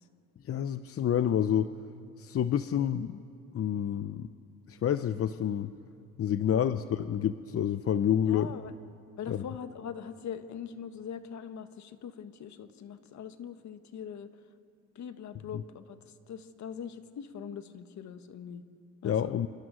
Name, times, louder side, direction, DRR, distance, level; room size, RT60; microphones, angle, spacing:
voice 1, 0.4-1.7 2.2-3.2 3.5-4.3 4.7-5.7 6.2-8.5 9.3-9.4 15.5-15.6 19.0-19.5, left 9 dB, 50° left, 12 dB, 0.7 m, -28 dB
voice 2, 8.2-8.7 9.2-14.3 14.9-18.6 19.0-19.4, left 7 dB, 65° left, 9 dB, 1.4 m, -42 dB
27.0 x 27.0 x 6.3 m, 2.7 s
cardioid pair, 90°, 30 cm